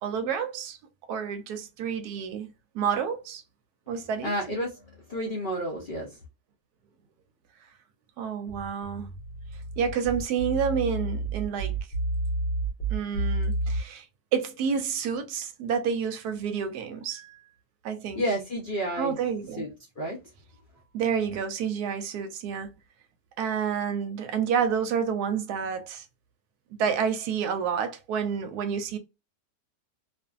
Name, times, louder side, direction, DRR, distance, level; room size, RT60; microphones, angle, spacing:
voice 1, 0.0-0.8 1.1-3.4 3.9-4.3 8.2-9.1 9.8-11.7 12.9-14.0 14.3-17.4 17.8-18.2 19.0-19.6 20.9-22.7 23.4-26.1 26.7-29.0, right 7 dB, 75° right, 1.0 m, -29 dB
voice 2, 4.2-6.1 18.1-19.2 19.6-19.7 20.0-20.2, equal, 85° left, 0.4 m, -30 dB
sound 1, 8.5-13.8, right 2 dB, 50° left, 0.9 m, -30 dB
2.5 x 2.5 x 2.3 m
omnidirectional pair, 1.8 m